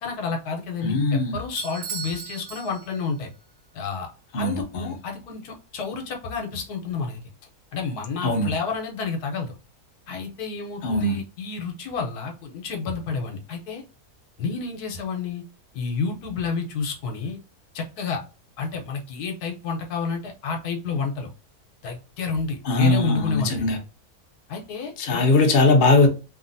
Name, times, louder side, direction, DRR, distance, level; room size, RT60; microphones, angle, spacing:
voice 1, 0.0-3.3 3.7-4.1 4.4-7.2 7.7-9.6 10.1-13.8 14.4-15.4 15.7-17.4 17.7-18.2 18.6-21.3 21.8-23.8 24.5-25.2, left 4 dB, 75° left, 1.2 m, -30 dB
voice 2, 0.8-1.4 4.3-4.9 8.2-8.5 10.8-11.2 22.7-23.8 25.0-26.1, left 2 dB, 45° left, 0.7 m, -20 dB
Bell / Doorbell, 1.6-3.3, right 7 dB, 70° right, 1.1 m, -37 dB
3.1 x 2.5 x 2.5 m
omnidirectional pair, 1.6 m